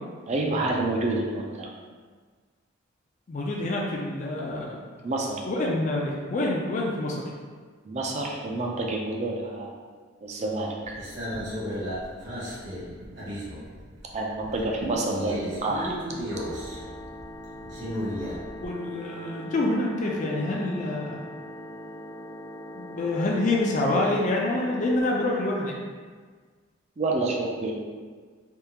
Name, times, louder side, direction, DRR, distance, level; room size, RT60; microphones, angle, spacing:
voice 1, 0.3-1.7 5.0-5.4 7.8-9.8 10.2-11.0 14.1-16.0 27.0-27.8, right 2 dB, 35° right, 0 dB, 0.4 m, -28 dB
voice 2, 3.3-4.8 5.5-7.2 18.6-21.2 22.7-25.7, left 2 dB, 40° left, -2 dB, 0.4 m, -27 dB
sound 1, 10.8-14.1 14.4-18.7, equal, 60° right, 1.2 m, -34 dB
sound 2, 16.3-24.9, equal, 75° left, 0.8 m, -41 dB
3.5 x 2.3 x 2.8 m, 1.5 s
head